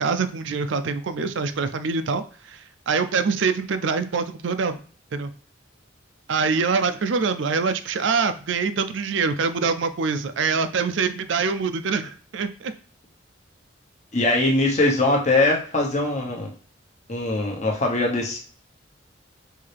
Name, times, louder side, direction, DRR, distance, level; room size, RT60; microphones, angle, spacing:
voice 1, 0.0-4.8 5.1-5.3 6.3-12.7, right 5 dB, 75° right, 10 dB, 0.5 m, -24 dB
voice 2, 14.1-16.5 17.1-18.4, left 2 dB, 35° left, -1 dB, 1.0 m, -21 dB
5.5 x 2.7 x 3.4 m, 0.44 s
head